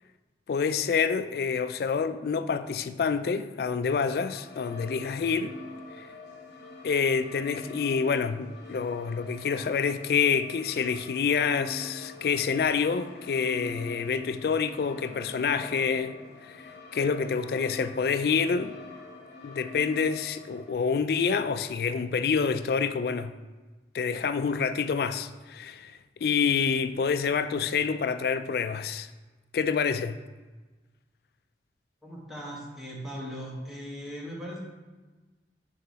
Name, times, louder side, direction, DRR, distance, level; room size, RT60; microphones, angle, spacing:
voice 1, 0.5-5.5 6.8-16.2 16.4-18.8 19.4-23.3 23.9-29.1 29.5-30.2, left 6 dB, 55° left, 0.3 m, -27 dB
sound 1, 3.8-20.7, left 3 dB, 75° left, 1.1 m, -45 dB
voice 2, 32.0-34.6, equal, ahead, 1.1 m, -38 dB
6.6 x 3.9 x 4.0 m
head